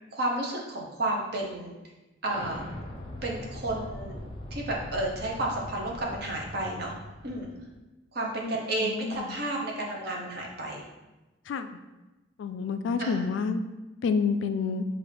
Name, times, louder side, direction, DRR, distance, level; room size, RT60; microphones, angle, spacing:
voice 1, 0.1-1.7 2.2-2.6 3.2-4.2 4.5-6.9 7.2-7.5 8.1-10.8 13.0-13.3, right 1 dB, 55° right, -1 dB, 0.9 m, -31 dB
Explosion, 2.2-7.8, left 1 dB, 25° left, 0.6 m, -41 dB
voice 2, 8.8-9.4 11.5-11.7 12.4-13.6 14.0-14.9, left 5 dB, 70° left, 9 dB, 0.3 m, -28 dB
6.1 x 2.5 x 3.4 m, 1.1 s
head